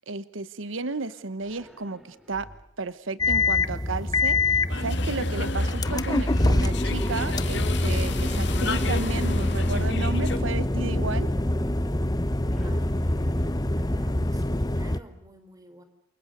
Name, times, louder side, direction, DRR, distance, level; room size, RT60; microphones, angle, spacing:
voice 1, 0.1-2.5 2.8-11.3, right 3 dB, 75° right, 15 dB, 1.1 m, -33 dB
sound 1, 1.4-2.9 6.1-7.6 9.6-10.8 12.5-14.2, equal, ahead, 3.7 m, -47 dB
sound 2, 3.2-15.0, left 2 dB, 20° left, 1.0 m, -25 dB
sound 3, 4.7-10.4, left 2 dB, 60° left, 2.7 m, -32 dB
voice 2, 12.6-15.8, right 1 dB, 20° right, 9 dB, 3.9 m, -50 dB
29.0 x 28.0 x 6.7 m, 0.72 s
head